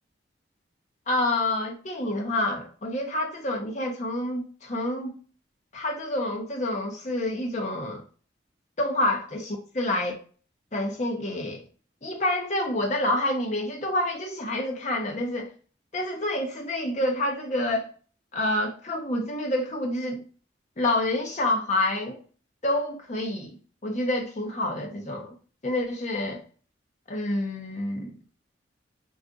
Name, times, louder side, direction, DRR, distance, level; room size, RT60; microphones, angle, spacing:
voice 1, 1.1-5.2 5.7-8.0 8.8-10.1 10.7-11.6 12.0-15.5 15.9-17.9 18.3-20.2 20.8-22.2 22.6-23.6 23.8-25.3 25.6-26.4 27.1-28.2, left 1 dB, 35° left, 0.6 m, -28 dB
2.4 x 2.4 x 3.7 m
head